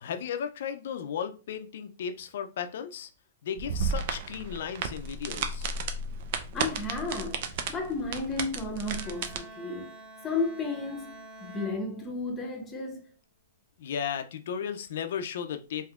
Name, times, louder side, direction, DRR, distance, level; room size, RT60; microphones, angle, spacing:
voice 1, 0.0-3.1 3.4-5.7 13.8-15.9, left 8 dB, 65° left, 0.4 m, -35 dB
sound 1, 3.6-9.4, right 4 dB, 55° right, 0.5 m, -33 dB
voice 2, 6.5-9.9 10.2-13.1, left 3 dB, 20° left, 0.8 m, -33 dB
Bowed string instrument, 8.9-12.6, right 2 dB, 15° right, 1.1 m, -47 dB
3.4 x 2.6 x 2.4 m
hypercardioid pair, 135°, 0 cm